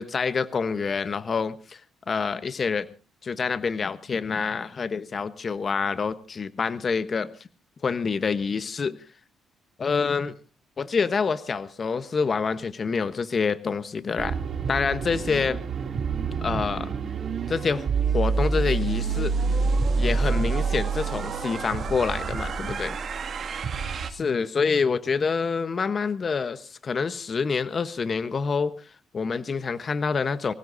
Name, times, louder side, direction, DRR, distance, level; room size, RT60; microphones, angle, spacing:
voice 1, 0.0-1.8 2.1-2.9 3.2-7.3 7.8-9.0 9.8-10.3 10.8-14.4 14.7-15.6 16.4-16.9 17.5-17.9 18.1-19.4 20.0-22.9 24.1-28.7 29.1-30.5, left 5 dB, 40° left, 13 dB, 1.0 m, -27 dB
sound 1, 14.2-24.1, right 5 dB, 55° right, 2.1 m, -27 dB
25.0 x 16.5 x 2.7 m, 0.34 s
cardioid pair, 90°, 0 cm